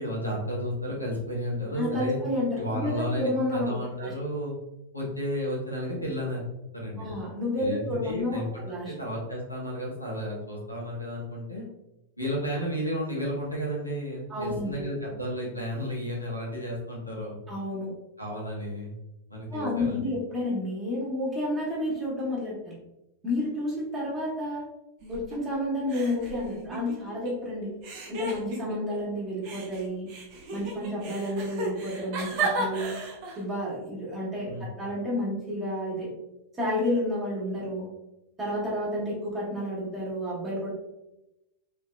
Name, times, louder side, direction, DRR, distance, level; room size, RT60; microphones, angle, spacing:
voice 1, 0.0-2.2 2.6-4.5 4.9-6.4 6.7-7.1 7.6-8.5 8.9-11.6 12.2-17.4 18.2-18.9 19.3-20.1 34.5-34.7, equal, 85° left, -3 dB, 0.9 m, -32 dB
voice 2, 1.8-4.1 7.0-8.9 14.3-14.9 17.5-17.9 19.5-22.8 23.2-24.6 25.1-27.7 28.1-30.1 30.5-33.0 33.4-36.1 36.6-37.9 38.4-40.7, left 1 dB, 20° right, -6 dB, 1.1 m, -30 dB
sound 1, 25.0-25.6 25.9-27.3 27.8-29.0 29.4-33.4, right 2 dB, 45° right, 0.6 m, -34 dB
3.2 x 2.8 x 2.3 m, 0.93 s
figure-of-eight pair, 90°, 0 cm